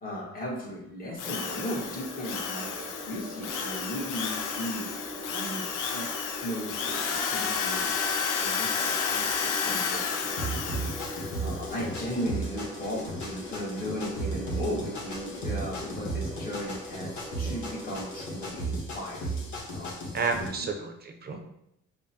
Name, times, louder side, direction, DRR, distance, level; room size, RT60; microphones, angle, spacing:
voice 1, 0.0-2.7 3.0-5.0 5.3-6.1 6.4-7.9 8.4-10.4 10.7-20.7, equal, 30° left, -4 dB, 1.4 m, -37 dB
Drill, 1.2-11.6, left 6 dB, 90° left, 0.5 m, -31 dB
sound 1, 1.2-18.7, equal, 5° left, 1.0 m, -42 dB
sound 2, 10.4-20.5, right 2 dB, 70° left, 1.1 m, -35 dB
voice 2, 20.1-21.4, right 4 dB, 35° right, 4 dB, 0.6 m, -31 dB
5.1 x 2.1 x 2.7 m, 0.81 s
cardioid pair, 90°, 30 cm